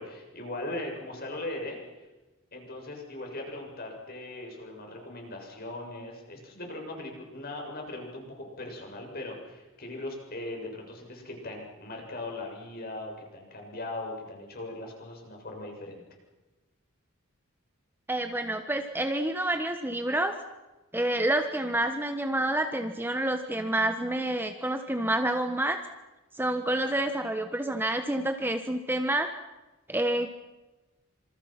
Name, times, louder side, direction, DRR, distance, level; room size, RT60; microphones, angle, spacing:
voice 1, 0.0-1.8 2.5-16.0, left 2 dB, 45° left, 2 dB, 7.2 m, -39 dB
voice 2, 18.1-20.4 20.9-25.8 26.3-29.3 29.9-30.3, right 1 dB, 10° right, 7 dB, 1.2 m, -28 dB
28.0 x 27.0 x 6.0 m, 1.1 s
head